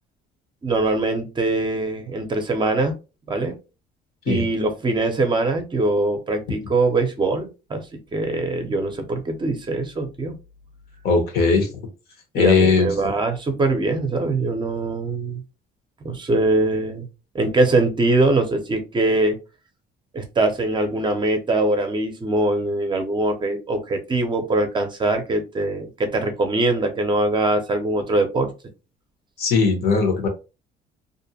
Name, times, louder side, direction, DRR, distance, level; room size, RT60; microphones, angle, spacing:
voice 1, 0.6-3.0 3.3-3.6 4.3-7.8 8.1-10.4 12.4-15.4 16.0-17.1 17.3-19.4 20.1-28.5, right 2 dB, 30° right, 6 dB, 0.6 m, -22 dB
voice 2, 11.0-11.8 12.3-12.9 29.4-30.3, left 4 dB, 65° left, 5 dB, 1.0 m, -19 dB
2.5 x 2.1 x 2.7 m, 0.29 s
cardioid pair, 110°, 17 cm